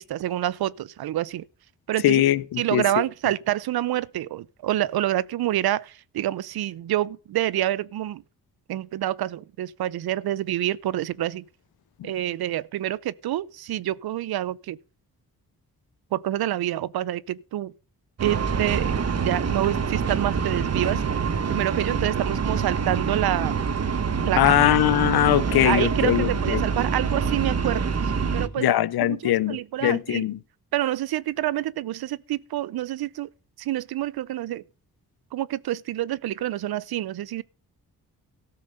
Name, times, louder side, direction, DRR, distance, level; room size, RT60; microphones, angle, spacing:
voice 1, 0.0-1.4 1.9-2.2 2.6-8.2 8.7-11.4 12.0-14.8 16.1-17.7 18.2-21.0 21.5-23.6 24.2-24.5 25.6-30.3 30.7-33.3 33.6-34.6 35.3-37.4, right 13 dB, 80° right, 0.6 m, -27 dB
voice 2, 2.0-2.8 12.0-12.1 24.4-26.6 28.6-30.4, left 13 dB, 85° left, 0.7 m, -21 dB
sound 1, 18.2-28.5, right 6 dB, 45° right, 1.0 m, -26 dB
13.5 x 6.5 x 5.4 m
cardioid pair, 55°, 36 cm